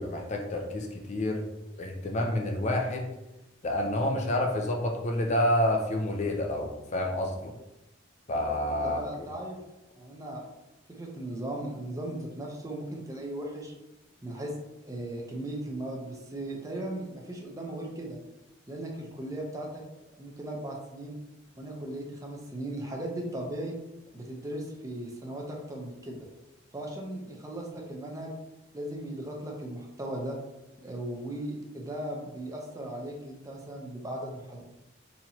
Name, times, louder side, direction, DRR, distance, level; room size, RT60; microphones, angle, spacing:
voice 1, 0.0-1.4 1.8-3.1 3.6-7.5 8.3-9.0, left 1 dB, 35° left, 1 dB, 0.4 m, -28 dB
voice 2, 8.8-9.6 9.9-10.4 10.9-13.7 14.2-14.5 14.8-18.2 18.7-19.8 20.2-21.2 21.6-23.7 24.1-26.2 26.7-28.3 28.7-30.4 30.8-34.6, right 1 dB, 15° right, -1 dB, 0.6 m, -37 dB
4.2 x 3.0 x 2.7 m, 0.95 s
head